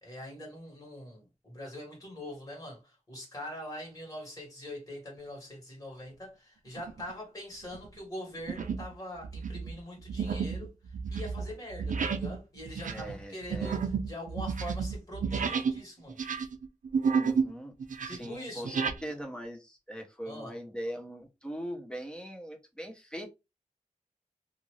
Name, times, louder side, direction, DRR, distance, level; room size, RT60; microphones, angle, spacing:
voice 1, 0.0-16.2 18.0-18.8 20.2-20.6, left 1 dB, 25° left, 1.5 m, -43 dB
sound 1, 6.8-7.1 7.6-7.9 8.5-8.9 9.2-15.8 16.1-17.5 17.8-19.0, right 6 dB, 85° right, 0.4 m, -31 dB
voice 2, 12.9-13.8 17.1-17.7 18.0-23.3, equal, 5° left, 0.8 m, -41 dB
2.6 x 2.5 x 3.1 m
wide cardioid pair, 70°, 13 cm